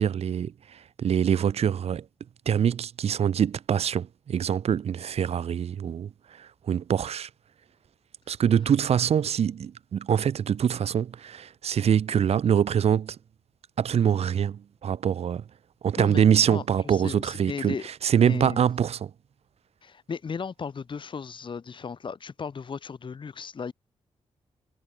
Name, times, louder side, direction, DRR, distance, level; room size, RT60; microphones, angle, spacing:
voice 1, 0.0-2.0 2.5-6.1 6.4-7.3 8.3-13.2 13.8-15.4 15.8-19.1, right 8 dB, 55° right, 0.4 m, -24 dB
voice 2, 16.0-17.8 18.2-18.6 19.8-23.7, left 5 dB, 40° left, 0.7 m, -36 dB
cardioid pair, 70°, 13 cm